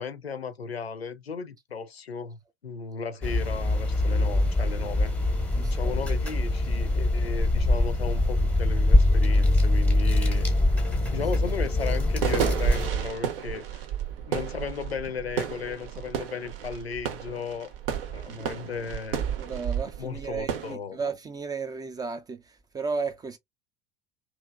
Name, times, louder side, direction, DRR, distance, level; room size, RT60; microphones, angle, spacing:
voice 1, 0.0-5.1 5.6-10.5 11.1-13.8 14.3-17.7 18.1-19.2 20.0-21.0, left 5 dB, 85° left, 0.5 m, -35 dB
sound 1, 3.2-12.9, left 2 dB, 5° left, 0.7 m, -23 dB
voice 2, 5.6-6.0 11.4-11.6 19.4-23.4, right 5 dB, 15° right, 0.3 m, -34 dB
sound 2, 8.8-8.9 9.2-20.7, right 8 dB, 65° right, 0.7 m, -32 dB
2.8 x 2.5 x 2.3 m
figure-of-eight pair, 70°, 30 cm